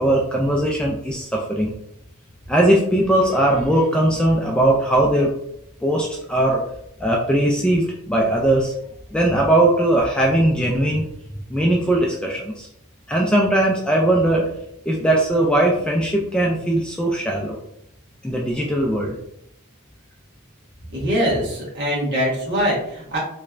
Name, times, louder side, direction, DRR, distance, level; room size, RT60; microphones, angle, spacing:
voice 1, 0.0-1.7 2.5-5.3 5.8-6.6 7.0-8.7 9.1-11.1 11.5-12.7 13.1-14.5 14.9-17.6 18.2-19.2, right 1 dB, 5° left, -2 dB, 0.3 m, -19 dB
voice 2, 20.9-23.2, equal, 50° right, -5 dB, 1.3 m, -22 dB
3.2 x 3.2 x 2.4 m, 0.76 s
head